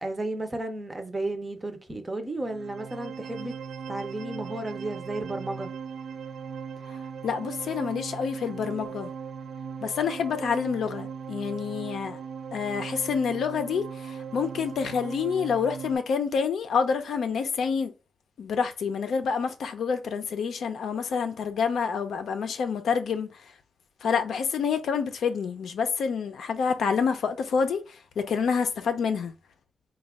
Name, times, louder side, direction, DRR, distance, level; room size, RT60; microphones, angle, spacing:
voice 1, 0.0-3.5 3.9-5.7, right 2 dB, 20° right, 0.5 m, -33 dB
sound 1, 2.4-16.0, right 6 dB, 80° right, 0.4 m, -38 dB
voice 2, 7.2-9.1 9.8-12.2 12.5-17.9 18.4-23.3 24.0-27.8 28.2-29.3, left 6 dB, 75° left, 0.5 m, -27 dB
4.2 x 2.3 x 3.5 m
wide cardioid pair, 175°, 0 cm